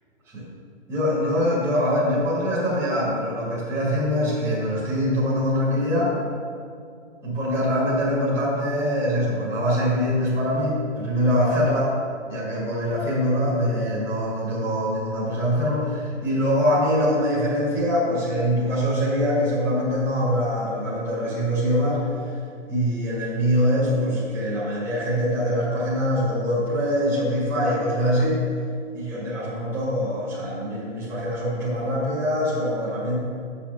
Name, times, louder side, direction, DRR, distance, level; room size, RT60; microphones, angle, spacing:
voice 1, 0.9-6.2 7.2-11.9 12.2-22.0 22.7-28.4 28.9-33.2, equal, 5° right, -11 dB, 1.9 m, -23 dB
9.5 x 6.9 x 3.5 m, 2.3 s
hypercardioid pair, 170°, 37 cm